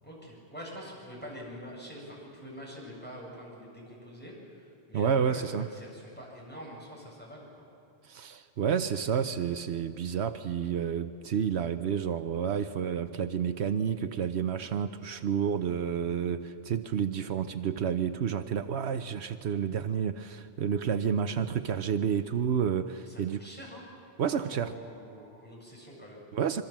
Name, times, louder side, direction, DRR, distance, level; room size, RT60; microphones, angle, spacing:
voice 1, 0.0-7.6 23.1-23.8 24.3-26.2, equal, 10° left, -3 dB, 7.6 m, -45 dB
voice 2, 4.9-5.6 8.0-23.4 24.2-24.7 26.3-26.6, right 7 dB, 80° right, 10 dB, 1.1 m, -30 dB
26.0 x 23.5 x 7.4 m, 2.5 s
omnidirectional pair, 1.1 m